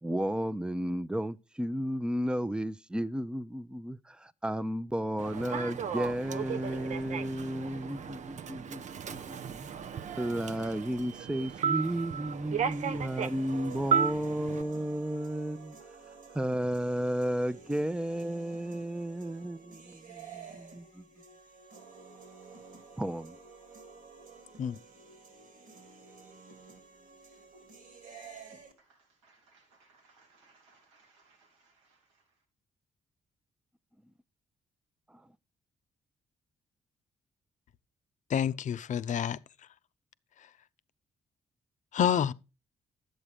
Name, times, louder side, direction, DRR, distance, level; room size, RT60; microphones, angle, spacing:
voice 1, 0.0-9.7 10.2-15.8 16.3-21.0 23.0-23.3, right 1 dB, 5° right, 0.7 m, -33 dB
Human voice / Subway metro underground, 5.2-14.6, right 7 dB, 50° right, 0.7 m, -35 dB
sound 1, 12.7-28.7, right 5 dB, 70° right, 2.5 m, -52 dB
voice 2, 28.7-32.3, right 3 dB, 90° right, 1.9 m, -65 dB
voice 3, 38.3-39.4 41.9-42.3, left 9 dB, 55° left, 0.6 m, -28 dB
11.0 x 7.8 x 5.0 m
hypercardioid pair, 40°, 15 cm